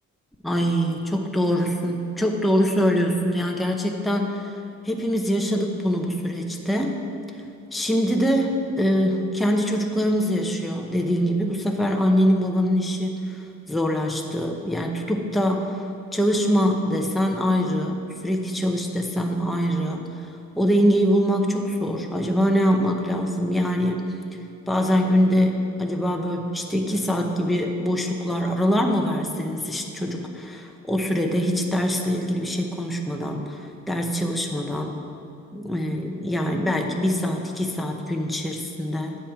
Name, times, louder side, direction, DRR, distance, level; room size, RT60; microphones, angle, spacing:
voice 1, 0.4-4.5 4.8-7.0 7.7-15.8 16.1-24.1 24.7-34.9 35.5-39.2, equal, ahead, 2 dB, 0.8 m, -23 dB
8.2 x 7.4 x 4.9 m, 2.5 s
cardioid pair, 90°, 30 cm